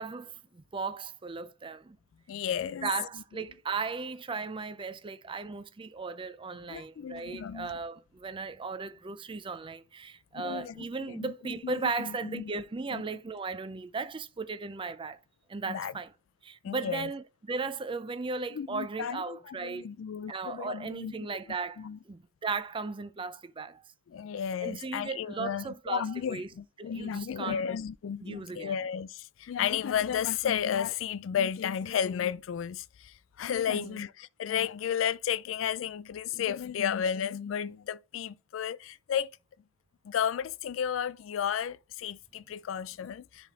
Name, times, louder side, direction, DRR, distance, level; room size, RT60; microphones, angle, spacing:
voice 1, 0.0-2.0 2.8-15.2 15.5-16.1 16.4-19.8 20.3-23.8 24.6-26.5 26.8-27.6 28.2-28.7 33.7-33.9, right 4 dB, 25° right, 0.5 m, -36 dB
voice 2, 2.3-2.9 6.7-7.8 10.3-11.3 11.6-12.5 12.9-13.0 15.6-15.9 16.6-17.1 18.5-21.1 21.8-22.0 24.1-39.3 40.0-43.5, left 8 dB, 85° left, 0.3 m, -33 dB
10.0 x 3.5 x 3.6 m
head